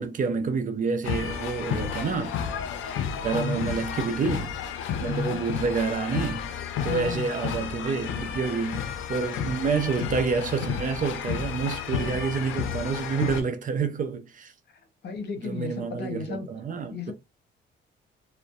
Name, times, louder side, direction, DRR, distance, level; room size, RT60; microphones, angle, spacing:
voice 1, 0.0-2.4 3.2-4.5 5.0-6.4 6.8-14.5 15.4-17.1, right 5 dB, 40° right, 0.5 m, -28 dB
sound 1, 1.0-13.4, left 8 dB, 85° left, 0.5 m, -32 dB
voice 2, 3.3-3.7 5.0-5.4 6.8-7.3 15.0-16.5 16.9-17.1, left 4 dB, 55° left, 0.9 m, -33 dB
2.5 x 2.1 x 2.3 m
cardioid pair, 90°, 20 cm